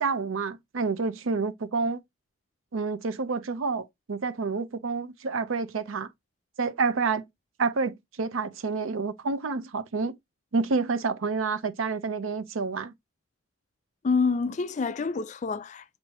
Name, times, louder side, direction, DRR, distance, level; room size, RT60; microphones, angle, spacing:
voice 1, 0.0-2.0 2.7-6.1 6.6-7.3 7.6-10.1 10.5-12.9, right 4 dB, 85° right, 0.6 m, -28 dB
voice 2, 14.0-16.0, left 4 dB, 35° left, 0.3 m, -27 dB
6.3 x 2.6 x 3.0 m
head